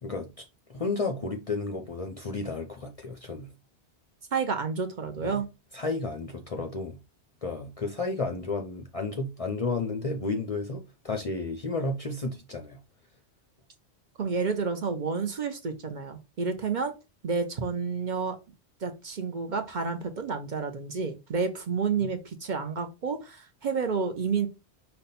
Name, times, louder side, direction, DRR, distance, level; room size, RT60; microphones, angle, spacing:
voice 1, 0.0-3.5 5.2-5.4 5.7-7.0 7.4-12.8 22.0-22.1, left 3 dB, 45° left, 0.5 m, -32 dB
voice 2, 4.3-5.5 14.2-16.9 17.2-18.4 18.8-24.5, right 5 dB, 50° right, 0.7 m, -30 dB
5.3 x 2.2 x 4.1 m
omnidirectional pair, 1.1 m